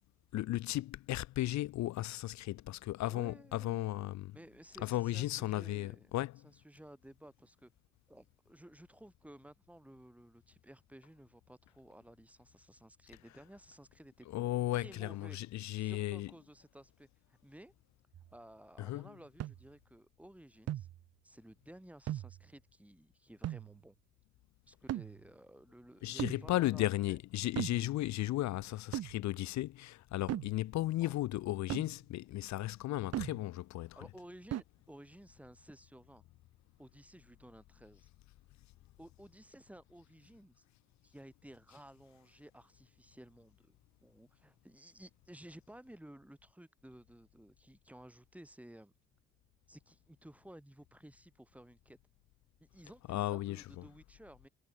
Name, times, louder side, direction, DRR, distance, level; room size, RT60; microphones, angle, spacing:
voice 1, 0.3-4.3 4.8-6.5 14.3-16.3 18.8-19.1 26.0-34.0 53.1-53.6, left 16 dB, 65° left, 0.5 m, -35 dB
voice 2, 3.0-3.9 4.3-6.1 6.4-7.7 8.1-14.3 14.7-15.4 15.8-17.7 18.3-20.9 21.2-24.0 24.7-27.2 31.0-31.2 33.8-36.2 36.8-38.1 39.0-40.6 41.0-43.8 44.0-48.9 49.7-52.0 52.7-54.5, right 1 dB, 5° right, 5.7 m, -55 dB
sound 1, 18.1-18.3 19.4-19.6 20.7-21.0 22.1-22.4 23.4-23.8 24.9-25.2 26.2-26.5 27.6-27.9 28.9-29.2 30.3-30.6 31.7-31.9 33.1-33.5 34.5-34.6, right 13 dB, 55° right, 0.6 m, -38 dB
cardioid pair, 90°, 30 cm